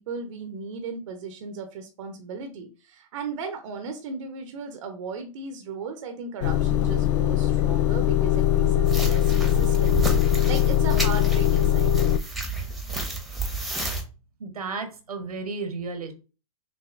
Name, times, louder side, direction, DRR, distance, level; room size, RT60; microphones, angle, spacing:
voice 1, 0.0-12.2, right 4 dB, 60° right, 6 dB, 0.9 m, -36 dB
Motor vehicle (road) / Engine starting / Idling, 6.4-12.2, left 11 dB, 55° left, 0.4 m, -21 dB
sound 1, 8.9-14.0, right 3 dB, ahead, 1.1 m, -31 dB
voice 2, 13.3-13.7 14.4-16.1, right 4 dB, 80° right, 6 dB, 1.2 m, -34 dB
6.1 x 2.8 x 2.5 m, 0.33 s
hypercardioid pair, 110°, 19 cm